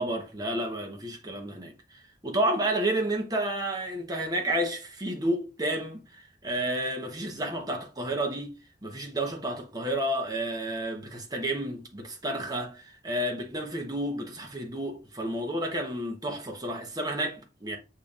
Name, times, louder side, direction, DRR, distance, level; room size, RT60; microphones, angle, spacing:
voice 1, 0.0-8.5 8.8-17.8, right 1 dB, 20° right, 0.9 m, -31 dB
6.8 x 2.8 x 2.4 m
head